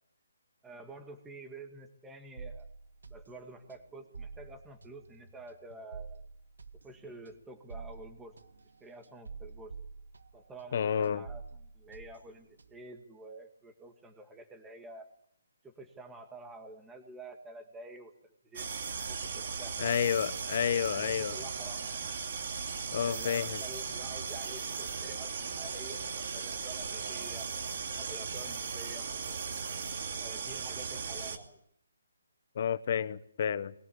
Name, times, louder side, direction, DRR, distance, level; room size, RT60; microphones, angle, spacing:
voice 1, 0.6-2.7 3.1-6.3 6.8-8.4 8.8-9.7 10.3-15.1 15.6-18.7 19.1-20.1 20.9-21.9 23.0-27.5 27.9-29.1 30.2-31.6, right 2 dB, 5° right, 6 dB, 1.8 m, -49 dB
sound 1, 2.4-10.8 11.0-13.0, right 4 dB, 90° right, 1.6 m, -48 dB
voice 2, 10.7-11.2 19.8-21.3 22.9-23.6 32.6-33.7, left 8 dB, 35° left, 16 dB, 1.0 m, -30 dB
sound 2, 18.5-31.4, right 5 dB, 45° right, 2.6 m, -37 dB
21.5 x 18.5 x 8.6 m, 0.69 s
hypercardioid pair, 170°, 0 cm